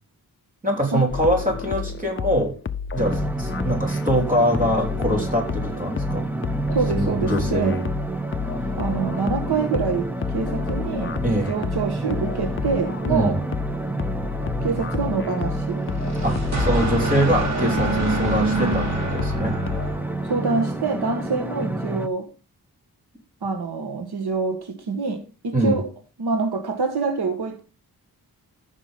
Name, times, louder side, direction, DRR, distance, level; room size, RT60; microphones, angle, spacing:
voice 1, 0.6-2.5 2.9-6.3 7.0-7.8 11.2-11.5 13.1-13.3 16.2-19.6 25.5-25.7, equal, 20° right, 3.4 m, -23 dB
sound 1, 1.1-19.9, left 6 dB, 35° left, 0.6 m, -31 dB
sound 2, 3.0-22.1, right 2 dB, 5° right, 0.7 m, -29 dB
voice 2, 6.7-7.8 8.8-13.4 14.6-15.8 20.2-22.3 23.4-25.9 26.2-27.6, right 4 dB, 80° right, 1.5 m, -26 dB
sound 3, 15.8-20.4, right 2 dB, 45° right, 3.0 m, -27 dB
14.5 x 6.1 x 3.7 m
wide cardioid pair, 140°, 38 cm